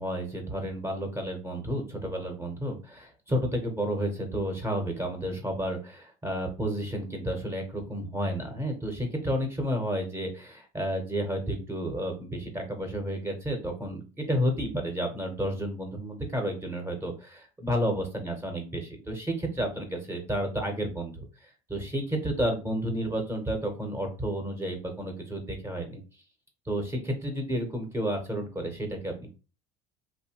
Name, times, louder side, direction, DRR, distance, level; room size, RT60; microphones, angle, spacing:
voice 1, 0.0-26.0 26.7-29.4, equal, 15° right, 3 dB, 0.7 m, -31 dB
2.6 x 2.1 x 2.9 m, 0.34 s
supercardioid pair, 110°, 18 cm